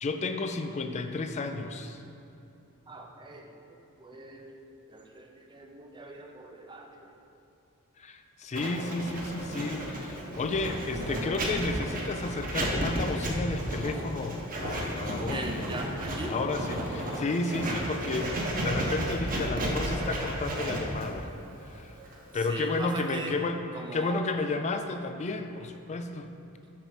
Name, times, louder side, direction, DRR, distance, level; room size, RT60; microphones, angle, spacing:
voice 1, 0.0-2.0 8.0-16.0 16.3-21.3 21.6-22.0 22.3-26.3, left 3 dB, 30° left, 7 dB, 0.4 m, -32 dB
voice 2, 2.9-7.2 15.3-16.4 22.5-23.4 23.7-24.2, right 2 dB, 20° right, 2 dB, 0.6 m, -41 dB
Writing, 8.5-23.3, right 1 dB, 40° right, 1.0 m, -33 dB
6.4 x 4.5 x 5.1 m, 2.8 s
head